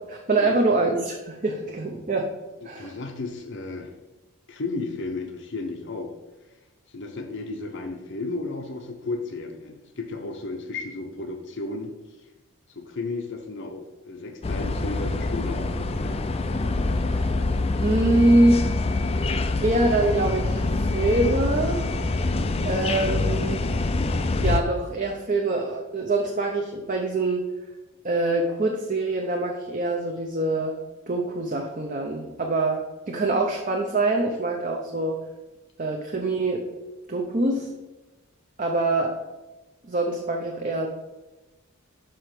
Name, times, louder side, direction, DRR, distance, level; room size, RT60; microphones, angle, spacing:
voice 1, 0.1-2.3 2.6-2.9 17.1-17.3 17.8-18.6 19.6-21.8 22.6-23.6 24.4-27.5 28.0-30.7 31.1-35.2 35.8-36.6 37.1-37.7 38.6-39.1 39.9-40.9, right 2 dB, 35° right, 1 dB, 0.7 m, -24 dB
voice 2, 2.6-3.9 4.5-6.1 6.9-11.9 12.8-16.2, left 3 dB, 55° left, 3 dB, 0.7 m, -34 dB
sound 1, 14.4-24.6, left 2 dB, 25° left, 0.4 m, -25 dB
5.8 x 4.9 x 5.9 m, 1.1 s
head